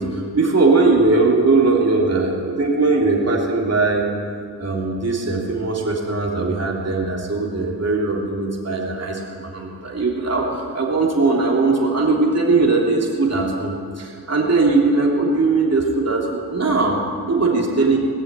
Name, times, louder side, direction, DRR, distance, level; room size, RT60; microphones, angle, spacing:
voice 1, 0.0-4.1 4.6-18.0, right 3 dB, 40° right, -2 dB, 3.3 m, -19 dB
20.0 x 6.9 x 9.1 m, 2.2 s
cardioid pair, 80°, 39 cm